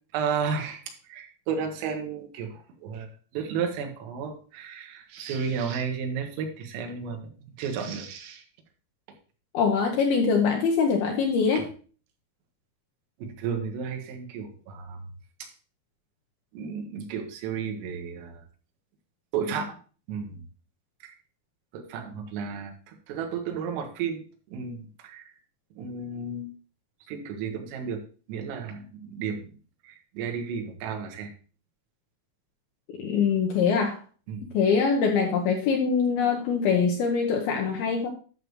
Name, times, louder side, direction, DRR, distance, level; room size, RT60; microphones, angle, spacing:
voice 1, 0.1-3.1 3.3-7.2 7.6-8.4 11.6-11.7 13.2-15.1 15.4-15.5 16.5-18.4 19.3-19.8 20.1-20.4 21.0-21.2 21.7-24.2 24.5-25.3 25.8-26.5 27.1-28.0 28.3-29.5 29.8-31.3 34.3-34.5, right 6 dB, 85° right, 3 dB, 4.0 m, -33 dB
voice 2, 9.5-11.6 33.0-34.0 34.5-38.1, left 5 dB, 80° left, 2 dB, 2.2 m, -23 dB
11.5 x 6.6 x 3.1 m, 0.39 s
omnidirectional pair, 5.8 m